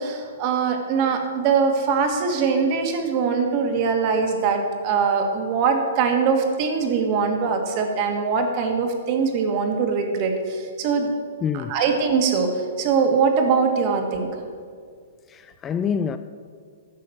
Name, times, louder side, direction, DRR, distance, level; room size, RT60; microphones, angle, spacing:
voice 1, 0.0-11.1 11.5-14.3, right 5 dB, 40° right, 1.6 m, -22 dB
voice 2, 11.4-11.8 15.3-16.2, left 7 dB, 20° left, 0.3 m, -26 dB
11.0 x 6.4 x 7.0 m
hypercardioid pair, 145°, 0 cm